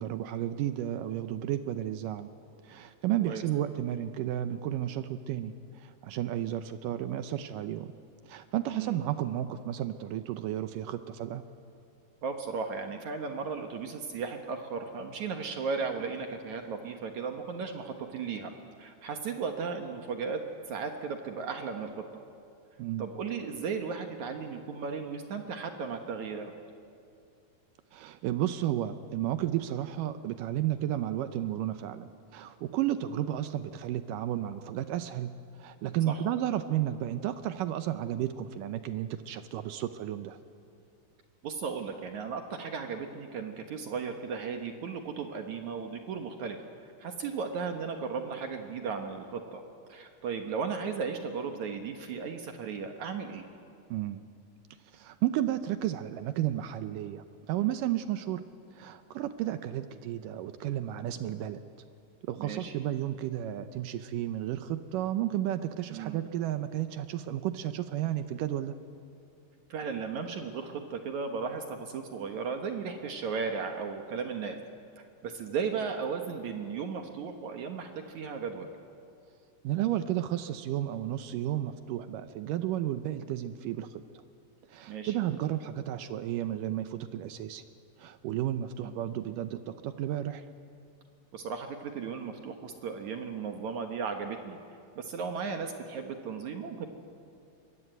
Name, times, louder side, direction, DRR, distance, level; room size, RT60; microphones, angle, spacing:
voice 1, 0.0-2.3 2.6-7.9 8.2-11.4 22.8-23.1 27.9-35.3 35.6-40.4 53.9-54.2 54.9-58.4 58.7-61.6 62.2-68.8 79.6-83.9 84.7-87.6 88.0-90.4, right 12 dB, 80° right, 10 dB, 2.0 m, -32 dB
voice 2, 12.2-18.5 18.8-22.0 23.0-26.5 36.1-36.2 41.4-46.6 47.0-49.6 49.9-53.5 62.4-62.7 65.9-66.2 69.7-74.6 75.2-78.7 84.9-85.1 88.8-88.9 91.3-94.6 95.0-96.9, right 5 dB, 60° right, 5 dB, 2.2 m, -35 dB
24.0 x 22.0 x 9.2 m, 2.4 s
omnidirectional pair, 4.5 m